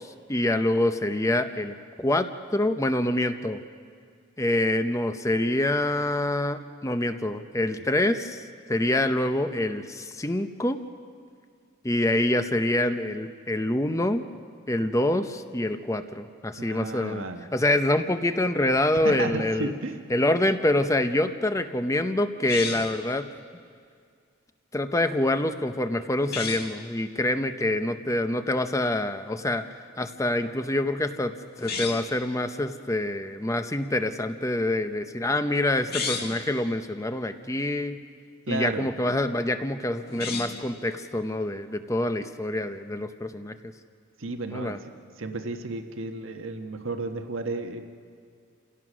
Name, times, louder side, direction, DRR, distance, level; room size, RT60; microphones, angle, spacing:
voice 1, 0.0-3.6 4.4-8.4 8.7-10.8 11.8-14.2 14.7-17.3 17.5-19.7 20.1-23.3 24.7-29.6 30.0-31.3 31.6-38.0 38.5-43.7 44.5-44.8, left 1 dB, 15° left, 9 dB, 0.7 m, -26 dB
voice 2, 16.7-17.5 19.0-20.0 38.5-38.9 44.2-44.9 45.2-47.9, right 2 dB, 80° right, 6 dB, 1.3 m, -33 dB
sound 1, 22.4-23.0 26.2-26.7 31.5-32.2 35.8-36.4 40.0-40.7, left 5 dB, 50° left, 1.8 m, -33 dB
28.5 x 17.0 x 6.2 m, 2.2 s
head